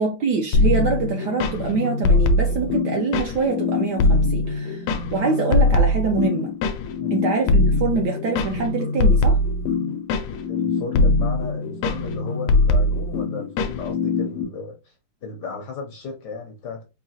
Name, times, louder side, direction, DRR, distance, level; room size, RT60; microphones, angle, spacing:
voice 1, 0.0-6.5 7.1-9.4, right 4 dB, 70° right, 1.0 m, -25 dB
sound 1, 0.5-14.4, left 2 dB, 90° left, 1.5 m, -21 dB
voice 2, 10.5-14.9 15.2-16.8, left 4 dB, 65° left, 1.1 m, -35 dB
4.7 x 2.7 x 2.7 m
omnidirectional pair, 2.4 m